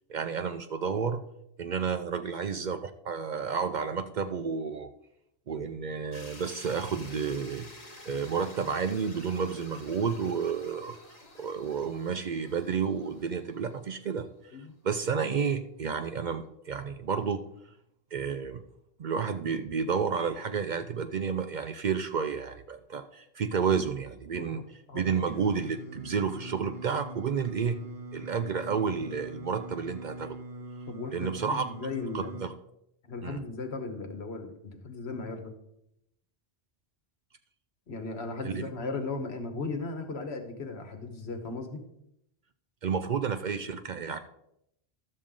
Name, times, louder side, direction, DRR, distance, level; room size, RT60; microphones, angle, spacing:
voice 1, 0.1-1.2 1.6-2.8 3.0-4.9 5.5-7.7 8.1-11.0 11.4-14.3 14.8-17.4 18.1-18.6 19.0-27.8 28.1-30.4 31.1-31.7 32.1-32.5 33.2-33.4 38.4-38.7 42.8-44.2, right 6 dB, 55° right, 9 dB, 0.5 m, -31 dB
sound 1, 6.1-14.1, left 2 dB, 40° left, 1.6 m, -50 dB
voice 2, 24.9-25.2 30.9-32.4 33.1-35.5 37.9-41.8, left 3 dB, 75° left, 5 dB, 1.5 m, -37 dB
Singing, 25.3-32.5, right 1 dB, 20° right, 0.9 m, -42 dB
12.0 x 7.3 x 3.7 m, 0.79 s
omnidirectional pair, 1.1 m